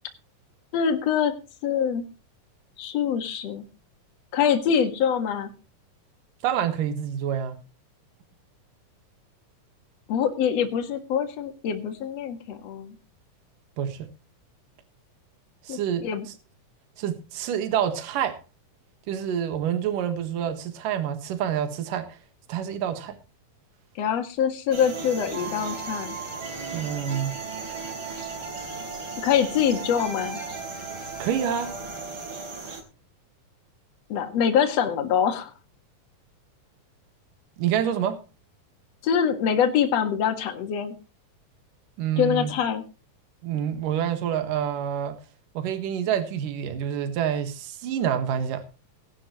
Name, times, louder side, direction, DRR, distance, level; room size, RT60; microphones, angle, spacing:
voice 1, 0.7-1.3 1.6-2.1 2.8-3.6 4.3-5.5 10.1-13.0 15.7-16.3 24.0-26.2 29.2-30.4 34.1-35.5 39.0-40.9 42.2-42.8, left 8 dB, 55° left, 2.6 m, -24 dB
voice 2, 6.4-7.6 13.8-14.1 15.7-16.0 17.0-18.4 19.1-22.1 22.5-23.2 26.7-27.3 31.2-31.7 37.6-38.2 42.0-42.5 43.4-45.2 45.5-48.6, right 9 dB, 70° right, 3.1 m, -27 dB
sound 1, 24.7-32.8, right 4 dB, 35° right, 4.4 m, -35 dB
19.0 x 11.0 x 3.0 m
omnidirectional pair, 4.0 m